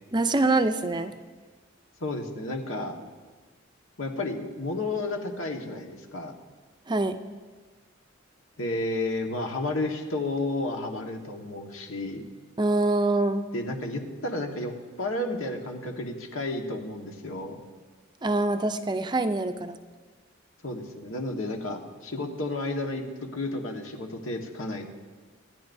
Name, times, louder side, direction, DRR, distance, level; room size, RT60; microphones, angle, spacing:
voice 1, 0.1-1.1 6.9-7.2 12.6-13.4 18.2-19.8, right 2 dB, 20° right, 9 dB, 0.5 m, -25 dB
voice 2, 2.0-3.0 4.0-6.3 8.6-12.3 13.5-14.7 15.0-17.6 20.6-24.9, left 2 dB, 85° left, 3 dB, 1.6 m, -32 dB
26.0 x 10.5 x 2.7 m, 1.4 s
head